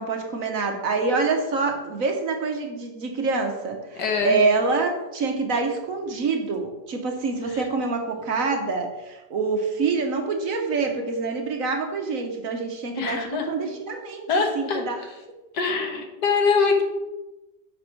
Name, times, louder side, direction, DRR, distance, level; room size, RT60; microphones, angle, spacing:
voice 1, 0.0-14.3 14.5-14.9, right 4 dB, 55° right, 4 dB, 1.2 m, -26 dB
voice 2, 4.0-4.4 7.5-7.6 13.0-13.5 14.3-14.8 15.5-16.8, left 5 dB, 75° left, 3 dB, 1.7 m, -23 dB
6.6 x 5.3 x 5.7 m, 1.0 s
omnidirectional pair, 1.8 m